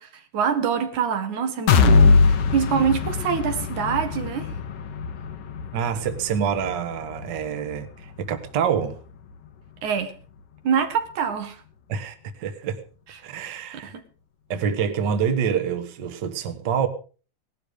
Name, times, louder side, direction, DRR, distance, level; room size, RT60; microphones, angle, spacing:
voice 1, 0.0-4.5 9.8-10.1 10.6-11.6 13.1-13.2 13.7-14.0, right 7 dB, 90° right, 3.3 m, -25 dB
sound 1, 1.7-9.5 9.9-10.0 10.4-10.5, left 4 dB, 85° left, 2.8 m, -22 dB
voice 2, 5.7-9.0 11.9-12.8 13.2-13.9 14.5-16.9, right 7 dB, 45° right, 1.8 m, -26 dB
18.0 x 12.0 x 5.1 m
omnidirectional pair, 3.3 m